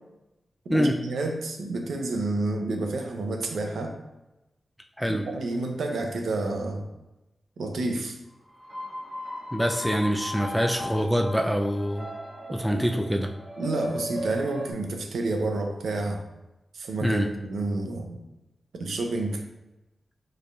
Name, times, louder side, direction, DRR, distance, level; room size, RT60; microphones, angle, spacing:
voice 1, 0.7-3.9 5.1-6.8 7.6-8.2 12.7-12.8 13.6-16.2 16.7-18.2 18.7-19.4, right 2 dB, 85° right, 3 dB, 0.5 m, -29 dB
sound 1, 8.5-14.7, equal, 45° right, 1.3 m, -36 dB
voice 2, 9.5-12.1 12.5-13.3 17.0-17.3, equal, ahead, 3 dB, 0.3 m, -25 dB
4.6 x 3.2 x 2.3 m, 0.97 s
cardioid pair, 75°, 0 cm